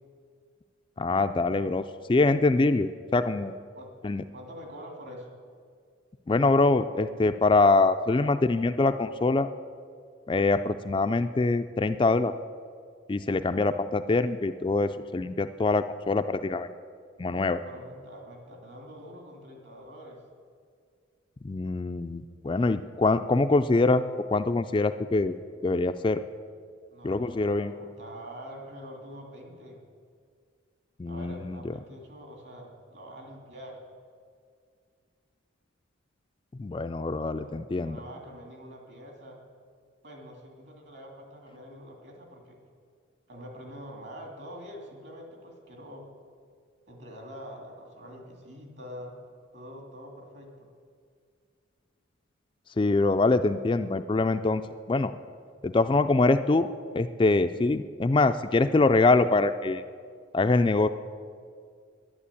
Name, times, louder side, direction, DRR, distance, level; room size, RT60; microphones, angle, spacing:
voice 1, 1.0-1.8 2.1-3.6 4.0-4.2 6.3-9.5 10.3-12.3 13.1-16.7 17.2-17.6 21.4-24.0 24.3-25.3 25.6-26.2 27.0-27.7 31.0-31.7 36.6-38.0 52.8-54.6 54.9-55.1 55.6-56.7 56.9-59.8 60.3-60.9, left 3 dB, 25° left, 9 dB, 0.3 m, -24 dB
voice 2, 4.3-5.3 17.6-20.2 26.9-29.8 31.1-33.8 37.4-37.5 37.8-39.4 40.0-42.6 43.3-46.1 46.9-49.2 49.5-50.7, equal, 55° right, 2 dB, 2.7 m, -45 dB
11.0 x 11.0 x 8.4 m, 2.2 s
head